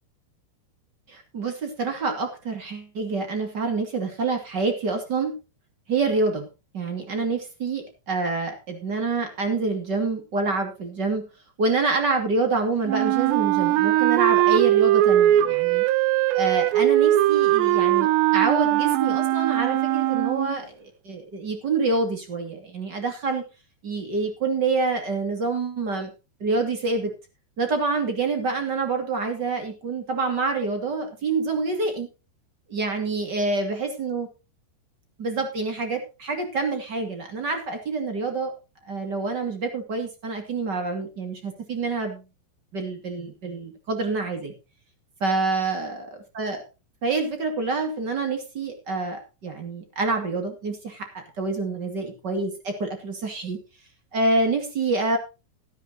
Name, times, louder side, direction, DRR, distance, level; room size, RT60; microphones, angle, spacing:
voice 1, 1.1-5.3 5.9-6.5 6.7-11.2 11.6-15.8 16.3-23.4 23.8-26.1 26.4-27.1 27.6-32.1 32.7-34.3 35.2-38.5 38.9-42.2 42.7-44.5 45.2-46.0 46.3-46.6 47.0-53.6 54.1-55.2, right 3 dB, 35° right, 5 dB, 2.0 m, -27 dB
Wind instrument woodwind instrument, 12.9-20.6, right 14 dB, 85° right, 3.0 m, -20 dB
14.5 x 13.0 x 2.8 m, 0.29 s
omnidirectional pair, 4.9 m